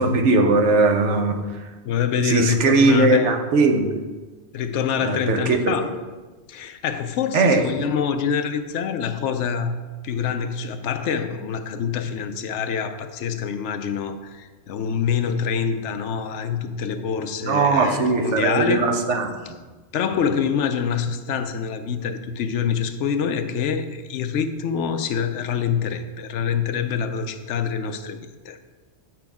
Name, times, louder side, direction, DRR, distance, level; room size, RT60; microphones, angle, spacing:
voice 1, 0.0-1.4 2.2-4.0 5.0-5.6 7.3-7.7 17.4-19.4, right 3 dB, 75° right, 5 dB, 1.1 m, -19 dB
voice 2, 1.8-3.4 4.5-5.9 6.5-9.7 10.0-18.9 19.9-28.2 28.4-28.6, left 7 dB, 75° left, 9 dB, 0.9 m, -25 dB
8.6 x 6.1 x 3.5 m, 1.3 s
omnidirectional pair, 1.2 m